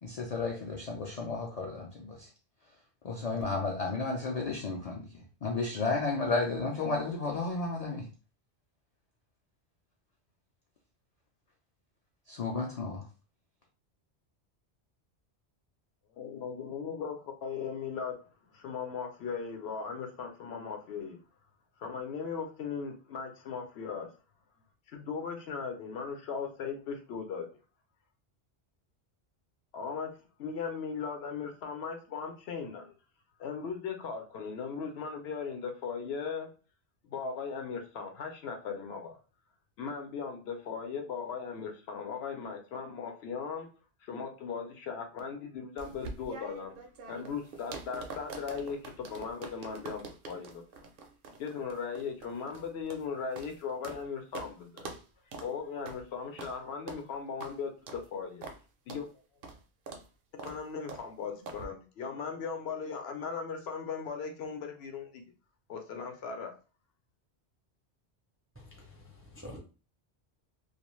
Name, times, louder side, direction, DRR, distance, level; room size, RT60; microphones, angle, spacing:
voice 1, 0.0-2.3 3.0-8.1 12.3-13.0, left 3 dB, 50° left, 0.5 m, -33 dB
voice 2, 16.2-18.2 18.5-21.2 21.8-24.1 24.9-27.5 29.7-33.0 33.4-36.5 37.0-39.2 39.8-43.7 44.0-46.7 47.1-50.6 51.4-54.9 55.4-58.4 58.9-59.1 60.4-65.2 65.7-66.5, left 6 dB, 70° left, 0.8 m, -38 dB
sound 1, 45.8-54.0 54.3-54.5 54.8-55.0 55.3-55.5 55.9-56.0 56.4-56.6 56.9-57.0 57.4-57.5 57.9-58.1 58.4-58.6 58.9-59.0 59.4-59.6 59.9-60.1 60.4-60.6 60.9-61.1 61.5-61.7, right 4 dB, 60° right, 0.6 m, -44 dB
voice 3, 68.6-69.6, left 1 dB, 20° right, 0.4 m, -48 dB
2.4 x 2.2 x 3.0 m
omnidirectional pair, 1.1 m